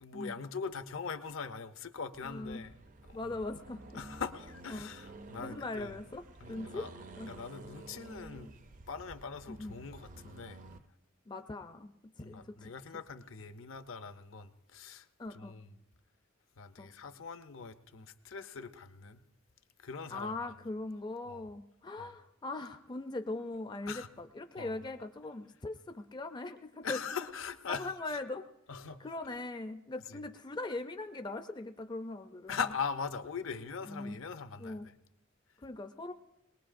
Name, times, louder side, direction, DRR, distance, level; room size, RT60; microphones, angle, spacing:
voice 1, 0.0-2.7 3.1-3.3 3.9-5.9 6.4-6.9 7.2-8.5 8.9-10.6 12.2-15.7 16.6-19.2 19.8-20.5 21.3-21.5 22.0-22.1 23.9-24.1 24.6-24.8 26.8-27.9 28.7-29.0 30.1-30.2 32.5-34.9, left 5 dB, 70° left, 0.6 m, -41 dB
Accelerating revving vroom, 2.1-10.9, right 2 dB, 40° right, 0.5 m, -51 dB
voice 2, 2.2-2.6 3.1-4.0 4.7-4.9 5.4-6.9 7.2-7.3 9.5-9.8 11.3-11.9 12.3-13.0 15.2-15.5 16.8-16.9 20.1-27.0 27.7-28.4 29.0-32.6 33.9-34.2 34.6-34.8 35.6-36.1, left 2 dB, 20° left, 0.4 m, -40 dB
21.0 x 19.0 x 2.5 m
head